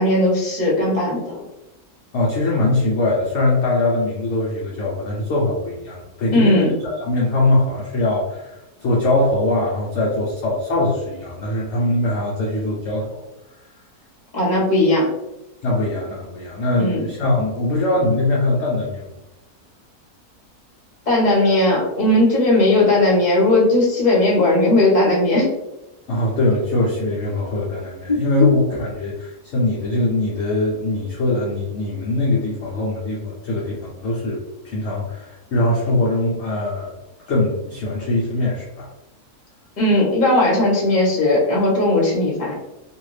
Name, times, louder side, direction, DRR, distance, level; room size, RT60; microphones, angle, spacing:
voice 1, 0.0-1.3 6.3-6.7 14.3-15.1 16.8-17.0 21.1-25.5 28.1-28.2 39.8-42.6, left 1 dB, 30° left, -4 dB, 1.0 m, -17 dB
voice 2, 2.1-13.2 15.6-19.1 26.1-34.4 34.6-36.9 37.3-38.9, left 2 dB, 60° left, -5 dB, 0.8 m, -22 dB
2.7 x 2.5 x 3.1 m, 0.94 s
omnidirectional pair, 1.6 m